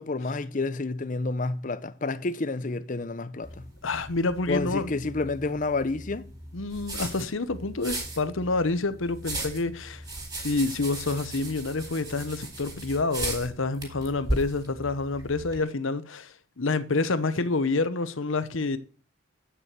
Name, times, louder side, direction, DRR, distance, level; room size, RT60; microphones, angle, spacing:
voice 1, 0.0-3.7 4.5-6.3, left 3 dB, 40° left, 0.6 m, -29 dB
sound 1, 3.4-15.6, right 1 dB, 20° right, 4.1 m, -37 dB
voice 2, 3.8-5.0 6.5-10.0 10.4-18.8, left 3 dB, 75° left, 0.9 m, -28 dB
8.5 x 6.9 x 7.4 m
head